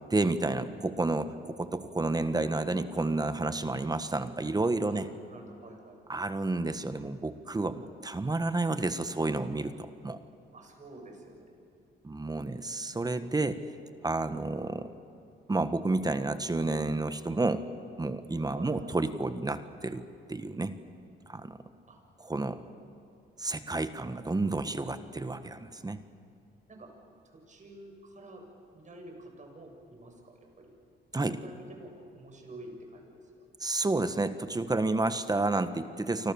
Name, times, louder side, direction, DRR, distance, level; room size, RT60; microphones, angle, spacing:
voice 1, 0.1-5.1 6.1-10.2 12.0-13.6 14.0-14.9 15.5-17.6 18.0-20.0 20.3-20.7 21.3-21.6 22.2-22.6 23.4-26.0 31.1-31.4 33.6-36.3, right 2 dB, 20° right, 10 dB, 1.4 m, -30 dB
voice 2, 5.3-6.0 10.5-11.5 18.5-19.0 21.9-22.0 26.7-26.9 27.5-28.4 28.7-30.7 31.3-33.2, right 1 dB, 40° right, 3 dB, 7.2 m, -49 dB
29.5 x 25.5 x 7.1 m, 2.5 s
cardioid pair, 90°, 20 cm